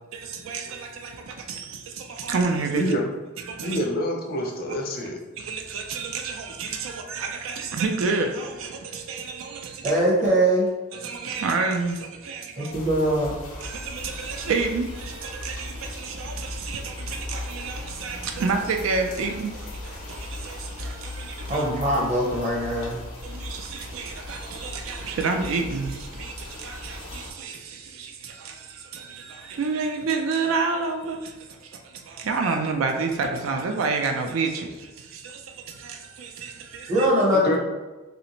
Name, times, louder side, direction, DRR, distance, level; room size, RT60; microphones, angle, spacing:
voice 1, 0.1-2.9 3.4-3.8 5.4-9.9 10.9-12.7 13.6-21.6 23.2-37.1, right 4 dB, 70° right, 0.3 m, -30 dB
voice 2, 2.7-3.0 3.6-5.1 37.4-37.6, equal, 45° left, 0.5 m, -26 dB
voice 3, 9.8-10.7 12.5-13.3 21.5-23.1 36.9-37.6, right 1 dB, 35° right, 0.8 m, -22 dB
sound 1, 12.7-27.3, left 2 dB, 85° left, 0.7 m, -37 dB
3.1 x 2.7 x 2.9 m
head